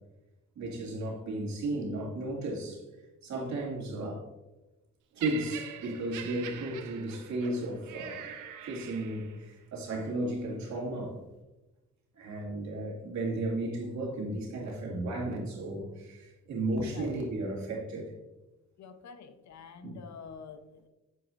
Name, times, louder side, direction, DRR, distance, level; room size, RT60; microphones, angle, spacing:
voice 1, 0.6-2.9 3.2-4.3 5.1-8.3 8.6-11.2 12.1-18.1 19.8-20.0, right 2 dB, 65° right, -2 dB, 2.5 m, -34 dB
Laughter, 5.2-9.4 10.2-10.4, right 8 dB, 90° right, 0.9 m, -43 dB
voice 2, 18.8-20.9, left 6 dB, 65° left, 9 dB, 0.9 m, -47 dB
8.4 x 7.9 x 2.6 m, 1.0 s
cardioid pair, 90°, 30 cm